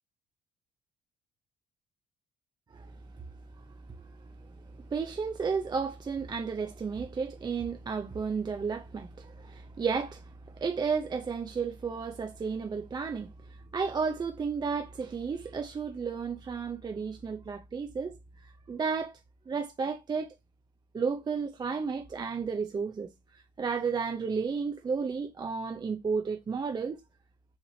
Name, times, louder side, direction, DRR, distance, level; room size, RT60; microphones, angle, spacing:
voice 1, 3.6-19.2 19.5-20.3 20.9-27.0, right 5 dB, 25° right, 0.5 m, -33 dB
5.7 x 2.9 x 2.6 m
cardioid pair, 110°, 17 cm